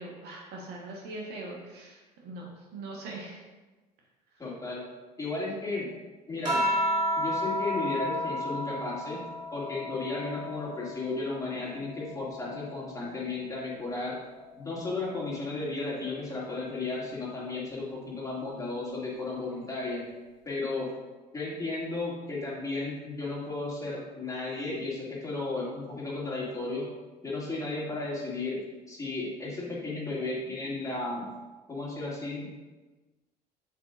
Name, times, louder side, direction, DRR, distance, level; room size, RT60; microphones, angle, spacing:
voice 1, 0.0-3.4, right 2 dB, 50° right, -2 dB, 1.5 m, -41 dB
voice 2, 4.4-4.8 5.2-5.9 6.3-6.6 7.2-9.2 9.5-14.2 14.6-20.0 20.5-20.9 21.3-26.8 27.2-28.6 28.9-31.3 31.7-32.5, left 3 dB, 15° left, -5 dB, 2.4 m, -34 dB
sound 1, 6.4-11.2 11.7-13.4 14.6-15.1, equal, 80° right, 1.6 m, -33 dB
8.0 x 7.5 x 2.5 m, 1.2 s
figure-of-eight pair, 60°, 21 cm